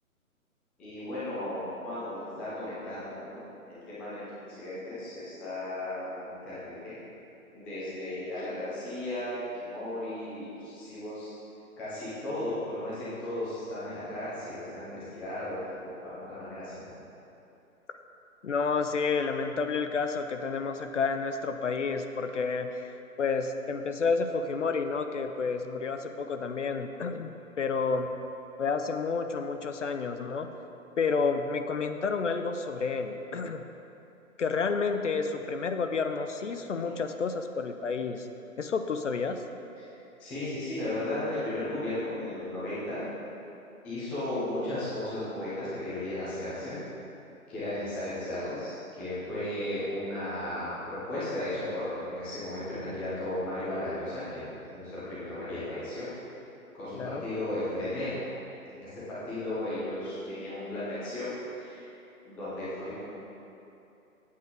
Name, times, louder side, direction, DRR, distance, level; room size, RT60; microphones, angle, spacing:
voice 1, 0.8-3.4 3.7-6.9 7.5-11.3 11.8-17.0 40.2-43.0 43.8-46.8 47.5-56.1 56.7-58.3 58.7-61.9 62.2-63.0, left 1 dB, 5° left, -11 dB, 0.6 m, -35 dB
voice 2, 18.4-27.3 27.6-28.1 28.6-30.5 31.0-33.6 34.4-38.3 38.6-39.4 56.9-57.2, left 4 dB, 55° left, 7 dB, 0.7 m, -30 dB
8.4 x 7.9 x 5.1 m, 2.8 s
figure-of-eight pair, 135°, 43 cm